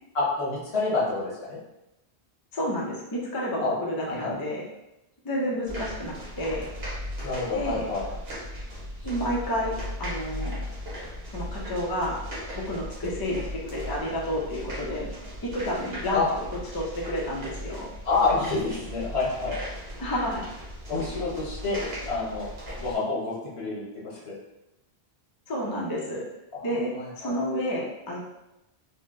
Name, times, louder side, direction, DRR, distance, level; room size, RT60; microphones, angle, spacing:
voice 1, 0.1-1.6 3.6-3.8 4.1-4.3 7.2-8.1 16.1-16.2 18.0-19.6 20.9-21.8 22.1-22.5 22.8-24.4 26.5-27.3, left 3 dB, 75° left, -7 dB, 1.4 m, -28 dB
voice 2, 2.5-4.6 5.2-6.7 7.5-7.9 9.0-10.6 11.3-12.2 12.5-15.1 15.4-16.5 16.7-17.9 20.0-20.5 25.5-26.2 26.6-28.2, equal, 30° left, -3 dB, 0.4 m, -30 dB
sound 1, 5.7-23.0, equal, 70° right, 1.2 m, -37 dB
3.8 x 2.1 x 2.5 m, 0.93 s
omnidirectional pair, 1.1 m